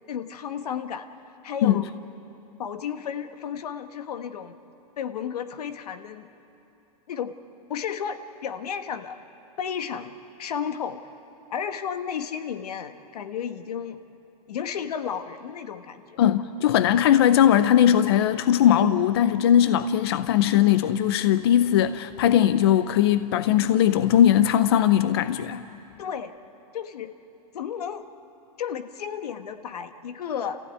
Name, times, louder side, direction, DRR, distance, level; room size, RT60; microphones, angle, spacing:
voice 1, 0.1-1.1 1.4-1.9 2.6-4.6 5.0-6.3 7.1-7.3 7.7-9.2 9.6-11.0 11.5-14.0 14.5-16.2 26.0-26.4 26.7-27.2 27.5-28.0 28.6-30.6, left 8 dB, 80° left, 9 dB, 1.4 m, -33 dB
voice 2, 16.2-25.6, left 10 dB, 40° left, 12 dB, 0.5 m, -19 dB
28.5 x 15.5 x 9.4 m, 2.9 s
supercardioid pair, 180°, 19 cm